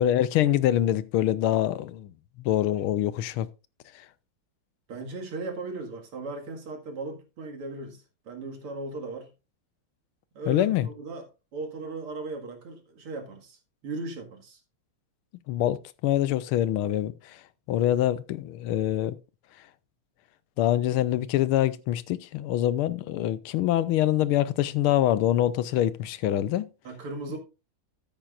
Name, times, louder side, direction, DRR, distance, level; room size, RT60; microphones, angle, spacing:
voice 1, 0.0-2.1 2.4-3.5 3.9-4.1 10.5-10.9 15.5-17.4 17.7-19.2 20.6-26.7, left 12 dB, 90° left, 1.6 m, -25 dB
voice 2, 4.9-9.3 10.3-11.2 11.5-14.6 26.8-27.4, right 3 dB, 90° right, 2.9 m, -37 dB
13.0 x 9.0 x 2.5 m
omnidirectional pair, 2.3 m